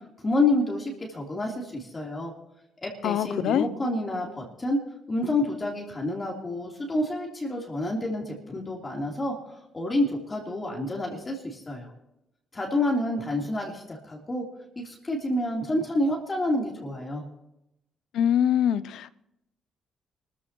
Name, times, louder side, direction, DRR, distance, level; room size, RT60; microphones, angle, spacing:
voice 1, 0.2-2.3 2.8-4.8 5.1-11.9 12.5-14.4 14.8-17.2, left 1 dB, 25° left, 3.5 m, -28 dB
voice 2, 3.0-3.7 18.1-19.1, left 10 dB, 80° left, 0.5 m, -24 dB
25.5 x 14.0 x 3.1 m
cardioid pair, 90°, 0 cm